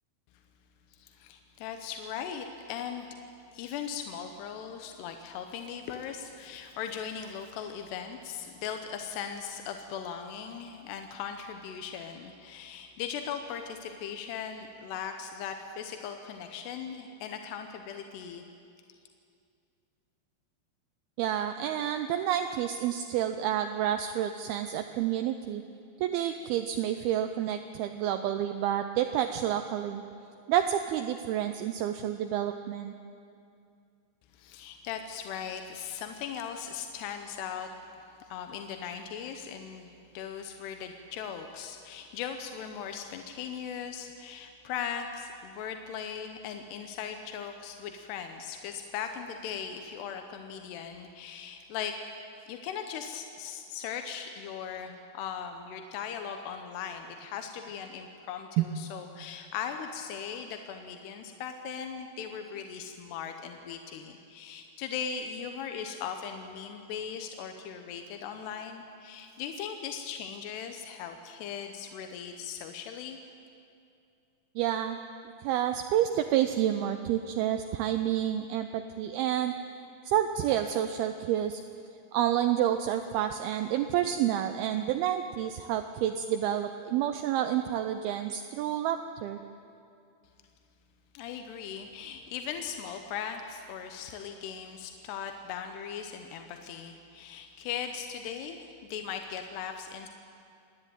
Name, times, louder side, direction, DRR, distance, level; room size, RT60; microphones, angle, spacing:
voice 1, 0.9-3.1 3.5-18.4 34.3-51.9 52.5-73.2 91.1-100.1, left 7 dB, 85° left, 6 dB, 3.0 m, -39 dB
voice 2, 21.2-25.6 26.0-30.0 30.5-32.9 58.6-58.7 74.6-75.0 75.4-79.5 80.0-81.6 82.1-89.4, right 11 dB, 80° right, 7 dB, 2.4 m, -29 dB
28.0 x 10.5 x 9.1 m, 2.5 s
omnidirectional pair, 4.7 m